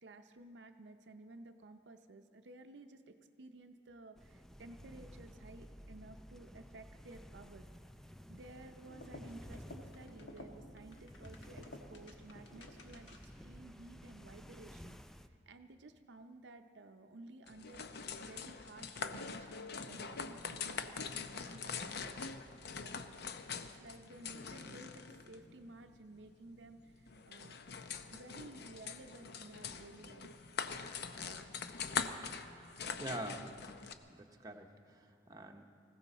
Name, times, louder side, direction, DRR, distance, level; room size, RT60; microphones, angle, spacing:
voice 1, 0.0-7.7 8.3-15.0 15.5-17.9 18.2-22.3 22.8-23.0 23.3-27.6 28.1-30.4, right 2 dB, 70° right, 6 dB, 0.6 m, -55 dB
sound 1, 4.1-15.3, equal, ahead, 0.4 m, -54 dB
sound 2, 8.8-13.5, left 1 dB, 85° left, 1.4 m, -54 dB
sound 3, 17.5-33.9, left 5 dB, 65° left, 0.6 m, -43 dB
voice 2, 32.9-33.5 34.1-35.7, right 1 dB, 20° right, 2 dB, 0.9 m, -45 dB
19.5 x 16.0 x 4.2 m, 2.5 s
head